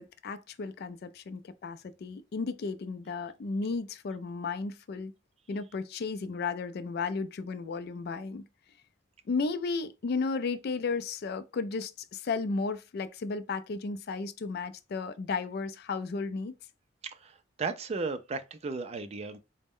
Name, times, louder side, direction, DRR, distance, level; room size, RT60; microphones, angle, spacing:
voice 1, 0.0-5.1 5.5-8.5 9.3-16.5, left 4 dB, 55° left, 0.4 m, -34 dB
voice 2, 17.0-19.4, right 4 dB, 35° right, 0.3 m, -35 dB
4.1 x 2.1 x 3.6 m
head